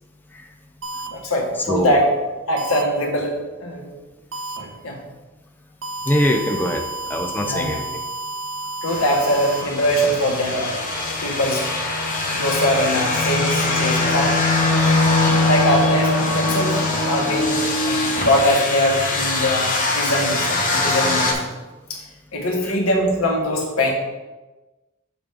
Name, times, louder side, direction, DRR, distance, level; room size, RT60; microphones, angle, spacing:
sound 1, 0.8-1.1 2.6-2.8 4.3-4.6 5.8-9.6, right 2 dB, 65° right, 0.7 m, -31 dB
voice 1, 1.1-2.1 2.5-3.9 4.6-5.0 7.4-7.7 8.8-10.7 11.2-11.6 12.3-14.3 15.4-21.5 21.9-22.0 22.3-23.9, equal, 90° left, 0 dB, 1.5 m, -22 dB
voice 2, 6.1-6.8 7.1-8.0 15.3-15.5 22.6-22.7, equal, 10° left, 3 dB, 0.5 m, -22 dB
sound 2, 8.9-21.3, left 2 dB, 40° left, 1.1 m, -22 dB
6.8 x 6.1 x 3.6 m, 1.1 s
head